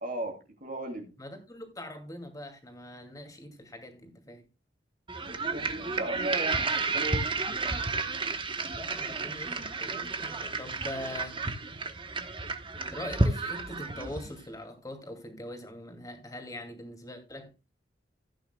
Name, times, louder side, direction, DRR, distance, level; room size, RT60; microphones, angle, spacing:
voice 1, 0.0-1.1 5.3-7.4, right 1 dB, 50° right, 2.7 m, -36 dB
voice 2, 1.2-4.5 8.7-11.4 12.9-17.5, left 1 dB, 20° left, 2.5 m, -42 dB
sound 1, 5.1-14.4, right 3 dB, 30° right, 1.1 m, -31 dB
15.5 x 9.3 x 2.3 m
head